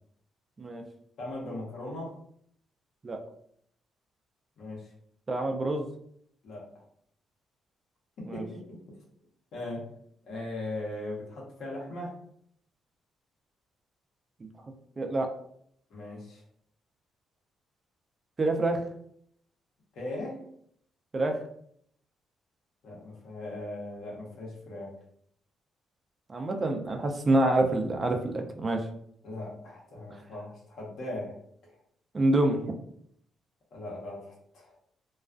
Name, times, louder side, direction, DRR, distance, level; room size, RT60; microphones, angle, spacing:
voice 1, 1.2-2.1 4.6-4.9 6.4-6.6 8.2-9.0 9.5-9.9 10.2-12.1 15.9-16.4 19.9-20.4 22.8-24.9 29.2-31.4 31.6-31.7 33.7-34.7, left 1 dB, 75° left, -3 dB, 0.8 m, -39 dB
voice 2, 5.3-5.8 8.3-8.4 15.0-15.3 18.4-18.8 21.1-21.4 26.3-28.8 32.1-32.7, right 2 dB, 35° right, 4 dB, 0.4 m, -26 dB
2.3 x 2.2 x 2.4 m, 0.68 s
supercardioid pair, 65°, 0 cm